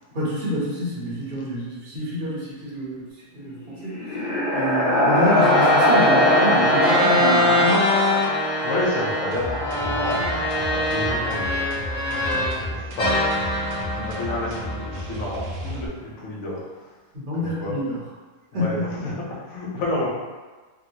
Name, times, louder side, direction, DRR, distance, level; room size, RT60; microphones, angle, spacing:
voice 1, 0.1-3.1 3.3-7.9 17.1-18.0 18.5-19.0, equal, 40° right, -8 dB, 0.9 m, -27 dB
sound 1, 3.6-11.5, left 1 dB, 75° left, 1.7 m, -22 dB
sound 2, 5.2-12.6 13.0-15.4, left 1 dB, 30° left, 0.8 m, -24 dB
voice 2, 8.6-11.8 12.2-13.4 13.9-16.9 17.4-17.8 18.5-20.1, left 1 dB, 60° left, -4 dB, 1.0 m, -30 dB
sound 3, 9.3-15.9, equal, 70° right, 1.0 m, -34 dB
3.5 x 2.0 x 2.8 m, 1.3 s
omnidirectional pair, 1.7 m